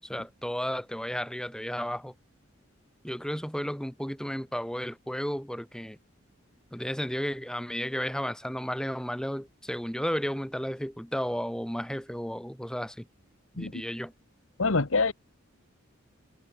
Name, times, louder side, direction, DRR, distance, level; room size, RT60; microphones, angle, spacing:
voice 1, 0.0-2.1 3.0-6.0 6.7-13.1 13.5-14.1, equal, 5° left, 5.8 m, -33 dB
voice 2, 14.6-15.1, left 3 dB, 80° left, 1.3 m, -25 dB
head